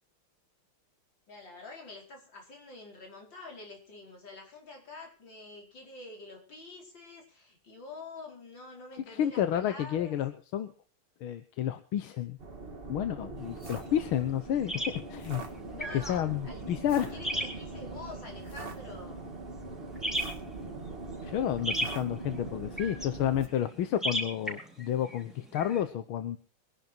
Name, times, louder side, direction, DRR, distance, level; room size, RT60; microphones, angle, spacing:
voice 1, 1.3-10.2 15.7-16.6 17.1-19.3, left 3 dB, 65° left, 1 dB, 5.5 m, -47 dB
voice 2, 9.1-10.7 11.2-12.4 12.9-15.5 15.9-17.2 21.2-26.4, left 10 dB, 85° left, 10 dB, 1.8 m, -31 dB
sound 1, 12.4-23.5, right 3 dB, 30° right, 2.0 m, -42 dB
sound 2, 13.4-25.8, right 1 dB, ahead, 4.3 m, -39 dB
23.0 x 11.0 x 4.5 m, 0.41 s
omnidirectional pair, 2.2 m